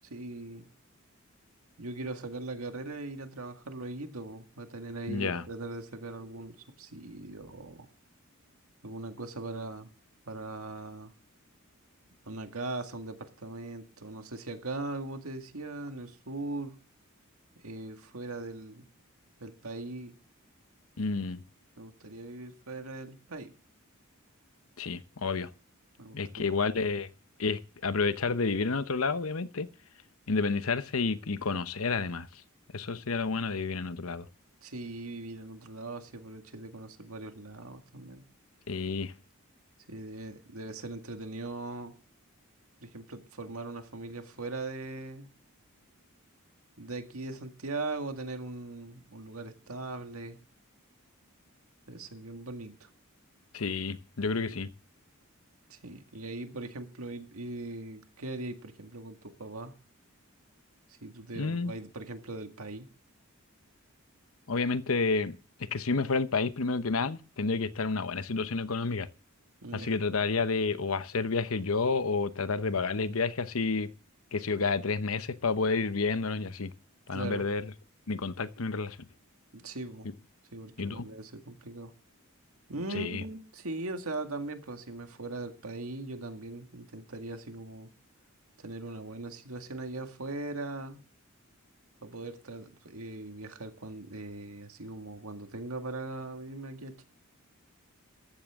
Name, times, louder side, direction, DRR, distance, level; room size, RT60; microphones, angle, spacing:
voice 1, 0.0-0.7 1.8-7.9 8.8-9.9 10.3-11.1 12.3-16.8 17.6-18.9 19.4-20.1 21.8-23.5 26.0-26.5 34.6-38.2 39.9-41.9 42.8-45.3 46.8-50.4 51.9-52.9 55.7-59.7 61.0-62.9 69.6-70.0 77.1-77.5 79.5-80.1 80.5-81.9 82.7-87.9 88.6-91.0 92.0-97.0, right 2 dB, 85° right, 2.0 m, -40 dB
voice 2, 5.1-5.4 21.0-21.4 24.8-25.5 26.1-27.1 27.4-29.7 30.3-32.4 32.7-34.3 38.7-39.1 53.5-54.7 61.4-61.7 64.5-65.4 65.7-69.1 69.7-73.9 74.3-76.7 77.1-77.6 78.1-79.0 80.8-81.1 82.9-83.2, left 4 dB, 75° left, 0.9 m, -30 dB
14.5 x 13.0 x 3.7 m
head